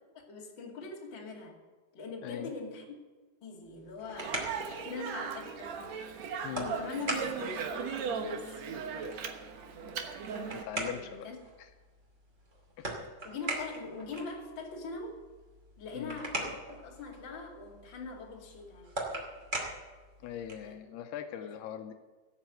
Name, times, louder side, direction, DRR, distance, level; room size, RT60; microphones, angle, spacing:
voice 1, 0.3-1.6 1.9-3.0 3.4-5.8 6.6-9.1 10.8-11.4 13.2-15.2 15.8-18.9 20.6-20.8 21.4-21.5, left 4 dB, 35° left, -2 dB, 2.6 m, -42 dB
sound 1, 3.7-20.8, right 1 dB, 25° right, 2.1 m, -42 dB
Speech, 4.2-10.6, right 6 dB, 75° right, 1.6 m, -37 dB
voice 2, 6.4-6.8 10.5-11.3 11.6-11.7 12.8-12.9 15.9-16.2 20.2-21.9, left 10 dB, 85° left, 7 dB, 2.6 m, -41 dB
17.5 x 7.6 x 7.8 m, 1.3 s
omnidirectional pair, 4.8 m